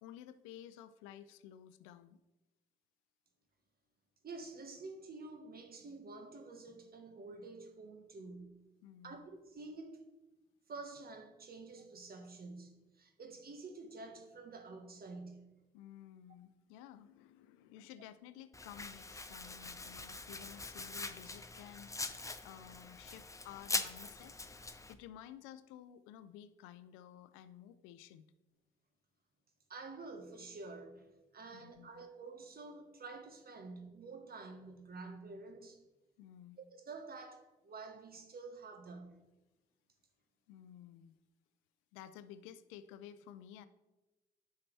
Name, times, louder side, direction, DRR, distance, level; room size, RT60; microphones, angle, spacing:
voice 1, 0.0-2.2 8.8-9.3 15.7-21.9 22.4-24.4 24.9-28.3 31.5-32.1 36.2-36.6 40.5-41.2 41.9-43.7, left 10 dB, 85° left, 0.5 m, -53 dB
voice 2, 4.2-8.6 9.0-10.0 10.7-15.5 29.7-31.1 31.3-35.8 36.6-39.2, right 3 dB, 50° right, 1.4 m, -49 dB
Domestic sounds home sounds, 18.5-24.9, left 3 dB, 15° left, 0.7 m, -43 dB
9.7 x 5.7 x 3.3 m
hypercardioid pair, 45°, 20 cm